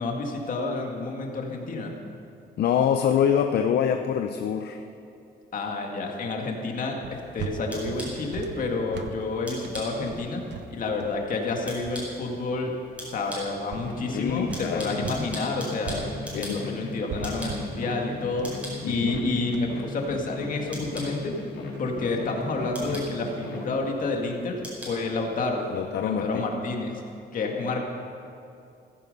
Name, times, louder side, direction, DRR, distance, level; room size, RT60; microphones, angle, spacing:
voice 1, 0.0-1.9 5.5-12.7 13.0-16.0 16.3-18.5 18.9-21.4 21.8-25.7 26.0-27.0 27.3-27.8, left 3 dB, 50° left, 1 dB, 2.1 m, -29 dB
voice 2, 2.6-4.8 14.1-15.0 16.3-16.8 18.8-19.1 25.7-26.4, left 8 dB, 65° left, 6 dB, 0.7 m, -25 dB
sound 1, 7.0-15.3 15.5-24.3, right 6 dB, 85° right, 1.1 m, -40 dB
sound 2, 7.1-25.9, equal, 5° right, 4.7 m, -44 dB
sound 3, 13.7-23.7, left 3 dB, 90° left, 3.6 m, -37 dB
15.5 x 15.5 x 5.4 m, 2.6 s
cardioid pair, 175°, 18 cm